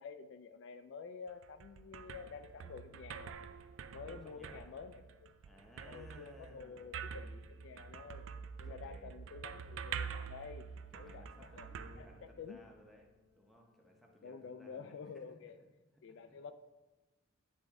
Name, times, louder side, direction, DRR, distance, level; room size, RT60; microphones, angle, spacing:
voice 1, 0.0-3.4 3.9-5.3 5.9-8.3 8.6-10.7 10.9-11.7 12.0-12.6 14.2-15.6 16.0-16.5, left 5 dB, 60° left, 9 dB, 0.3 m, -49 dB
sound 1, 1.3-12.8, right 6 dB, 70° right, 0.3 m, -47 dB
sound 2, 2.2-15.1, left 5 dB, 25° right, 1.0 m, -72 dB
voice 2, 3.9-4.8 5.4-7.3 8.6-9.1 10.9-13.1 13.3-15.7 16.1-16.4, equal, ahead, -1 dB, 0.8 m, -60 dB
9.8 x 3.6 x 3.5 m, 1.1 s
head